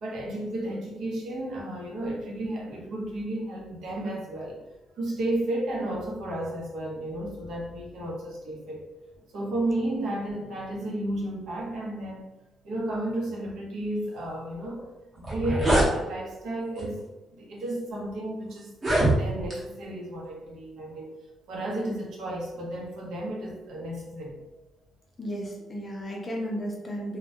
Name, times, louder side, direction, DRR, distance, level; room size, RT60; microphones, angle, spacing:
voice 1, 0.0-4.6 5.0-8.9 9.3-12.4 12.6-14.9 15.2-18.7 19.1-21.1 21.5-24.4, right 1 dB, 70° right, -2 dB, 0.6 m, -33 dB
sound 1, 14.8-14.9 15.2-15.9 16.8-17.0 17.7-17.8 18.7-19.6, right 1 dB, 30° right, 0.8 m, -23 dB
voice 2, 25.2-27.2, equal, 25° left, -1 dB, 0.5 m, -34 dB
2.1 x 2.0 x 2.7 m, 1.0 s
cardioid pair, 125°, 0 cm